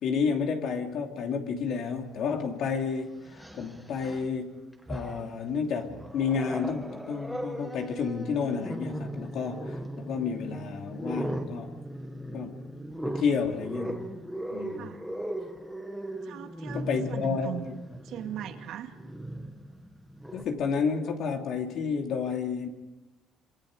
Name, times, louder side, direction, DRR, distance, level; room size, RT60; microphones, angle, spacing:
voice 1, 0.0-4.6 4.9-11.8 12.3-12.7 13.0-14.1 14.5-14.9 16.7-17.8 20.3-22.7, left 5 dB, 60° left, 3 dB, 3.1 m, -31 dB
Growling, 2.2-2.3 3.3-4.3 4.7-5.4 5.9-20.4, right 1 dB, ahead, 2.0 m, -38 dB
voice 2, 16.2-17.7 18.0-18.9, right 11 dB, 65° right, 5 dB, 2.3 m, -39 dB
27.0 x 26.0 x 5.1 m, 1.0 s
cardioid pair, 140°, 0 cm